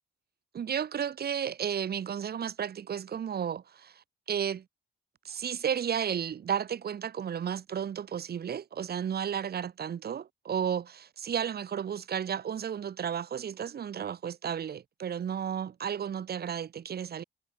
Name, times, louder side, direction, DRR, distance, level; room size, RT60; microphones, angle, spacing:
voice 1, 0.5-4.6 5.2-17.2, right 8 dB, 50° right, 2.1 m, -33 dB
cardioid pair, 90°, 20 cm